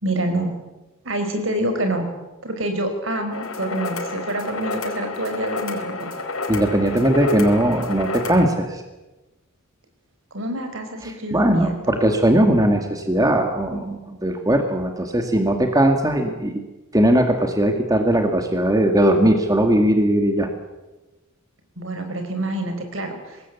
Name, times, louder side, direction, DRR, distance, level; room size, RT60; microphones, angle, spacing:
voice 1, 0.0-0.5 1.0-2.1 2.4-6.1 10.3-12.0 21.8-23.4, right 1 dB, 65° right, 6 dB, 5.3 m, -27 dB
sound 1, 3.3-8.5, left 3 dB, 85° left, 4.6 m, -30 dB
voice 2, 6.5-8.8 11.0-16.6 16.9-20.5, right 1 dB, 15° right, 4 dB, 2.1 m, -19 dB
25.0 x 20.0 x 8.4 m, 1.1 s
head